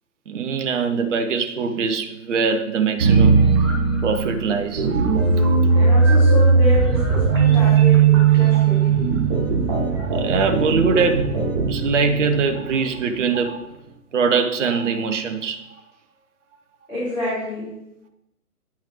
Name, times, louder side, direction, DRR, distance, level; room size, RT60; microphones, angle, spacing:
voice 1, 0.3-3.4 4.0-5.5 5.7-5.8 10.0-11.4 11.7-13.7 14.1-15.6, right 5 dB, 50° right, 6 dB, 0.7 m, -22 dB
sound 1, 3.0-13.1, right 5 dB, 15° right, 0.7 m, -18 dB
voice 2, 5.7-9.1 16.9-17.7, left 1 dB, 5° left, -14 dB, 2.7 m, -28 dB
9.2 x 5.6 x 3.0 m, 0.86 s
figure-of-eight pair, 135°, 47 cm